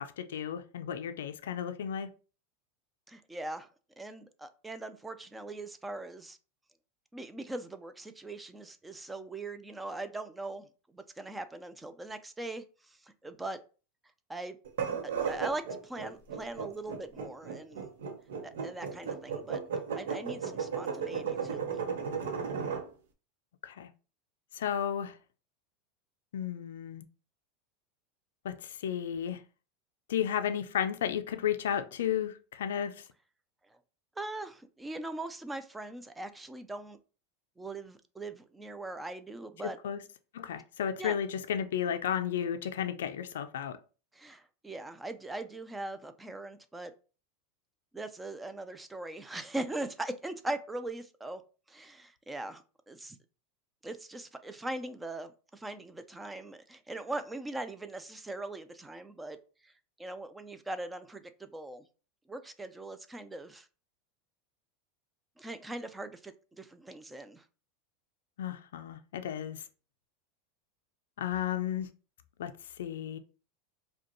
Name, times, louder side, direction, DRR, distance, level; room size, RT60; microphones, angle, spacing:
voice 1, 0.0-2.1 23.6-23.9 24.5-25.2 26.3-27.0 28.4-29.4 30.1-33.1 39.8-40.0 40.3-43.8 68.4-69.6 71.2-71.9 72.4-72.5 72.8-73.2, left 9 dB, 90° left, 0.3 m, -33 dB
voice 2, 3.1-3.7 4.0-6.4 7.1-13.6 14.3-14.6 15.0-17.8 18.4-19.6 19.9-21.8 34.2-37.0 37.6-39.8 41.0-41.2 44.1-46.9 47.9-51.4 51.7-53.2 53.8-59.4 59.6-59.7 60.0-61.8 62.3-63.7 65.4-67.4, right 2 dB, 10° right, 0.4 m, -41 dB
sound 1, 14.7-22.9, right 6 dB, 85° right, 0.8 m, -35 dB
4.9 x 2.3 x 2.9 m
supercardioid pair, 130°, 0 cm